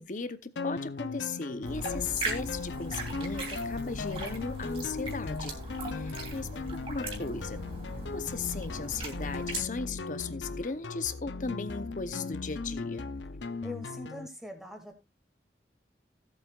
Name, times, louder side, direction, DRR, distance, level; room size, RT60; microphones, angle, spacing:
voice 1, 0.0-5.6 5.9-7.7 8.1-13.1, left 4 dB, 45° left, 0.8 m, -37 dB
sound 1, 0.6-14.3, left 4 dB, 85° left, 0.6 m, -38 dB
sound 2, 1.6-9.6, right 2 dB, 30° right, 3.1 m, -38 dB
voice 2, 13.6-15.0, left 1 dB, ahead, 2.2 m, -44 dB
17.0 x 8.1 x 2.4 m
head